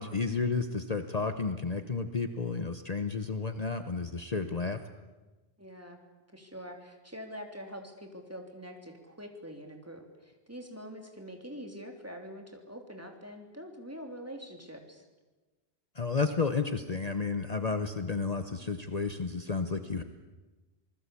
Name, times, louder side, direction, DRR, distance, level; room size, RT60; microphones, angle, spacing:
voice 1, 0.0-4.8 15.9-20.0, left 4 dB, 40° left, 8 dB, 1.1 m, -32 dB
voice 2, 5.6-6.0 6.3-15.0, equal, 15° right, 3 dB, 3.4 m, -45 dB
27.5 x 20.0 x 8.5 m, 1.2 s
omnidirectional pair, 1.1 m